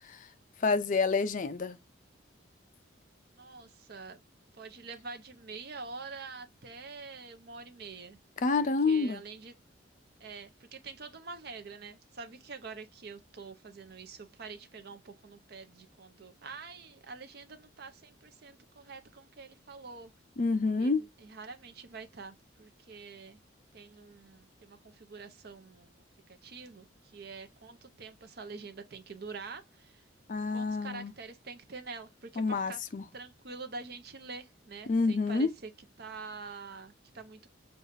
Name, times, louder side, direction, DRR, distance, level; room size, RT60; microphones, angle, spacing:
voice 1, 0.6-1.8 8.4-9.2 20.4-21.0 30.3-31.1 32.4-33.0 34.9-35.5, left 4 dB, 40° left, 0.4 m, -28 dB
voice 2, 3.4-4.2 4.5-8.2 8.6-9.5 10.2-20.1 20.8-23.4 23.7-25.9 26.3-30.0 30.5-32.8 33.1-35.7 36.0-37.5, right 4 dB, 50° right, 0.7 m, -46 dB
6.5 x 2.4 x 2.6 m
head